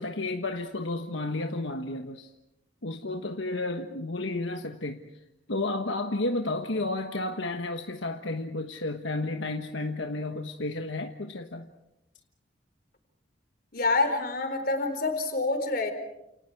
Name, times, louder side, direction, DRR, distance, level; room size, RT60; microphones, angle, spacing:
voice 1, 0.0-2.3 2.8-5.0 5.5-11.7, left 2 dB, 80° left, 5 dB, 1.3 m, -32 dB
voice 2, 13.7-15.9, left 3 dB, 50° left, 6 dB, 4.1 m, -27 dB
30.0 x 28.5 x 4.7 m, 0.87 s
head